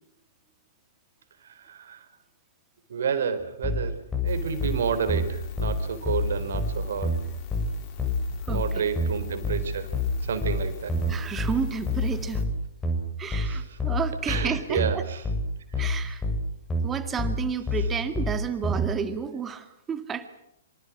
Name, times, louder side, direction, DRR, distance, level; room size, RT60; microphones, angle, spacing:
voice 1, 1.4-2.0 2.9-3.9 4.2-7.1 8.5-9.9 10.2-10.9 13.3-13.6 14.3-15.2 15.8-15.9, right 6 dB, 60° right, 10 dB, 4.4 m, -30 dB
sound 1, 3.6-18.9, left 1 dB, 10° left, 7.2 m, -27 dB
sound 2, 4.3-12.5, left 9 dB, 35° left, 5.1 m, -40 dB
voice 2, 8.5-8.8 11.1-12.5 13.2-15.0 15.8-16.2 16.8-20.3, right 6 dB, 15° right, 10 dB, 2.3 m, -31 dB
26.5 x 26.5 x 6.2 m, 0.77 s
figure-of-eight pair, 110°, 0 cm